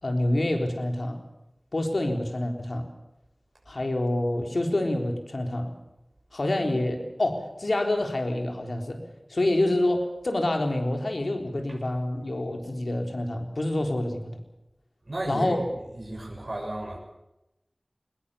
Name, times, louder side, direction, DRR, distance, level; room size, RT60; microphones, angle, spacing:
voice 1, 0.0-1.2 1.7-2.9 3.7-5.7 6.3-9.0 9.3-14.3 15.3-15.6, left 1 dB, 85° left, 4 dB, 3.8 m, -27 dB
voice 2, 15.0-15.7 16.0-17.0, right 1 dB, 55° right, -1 dB, 6.7 m, -33 dB
21.0 x 20.5 x 7.0 m, 0.91 s
wide cardioid pair, 45°, 0 cm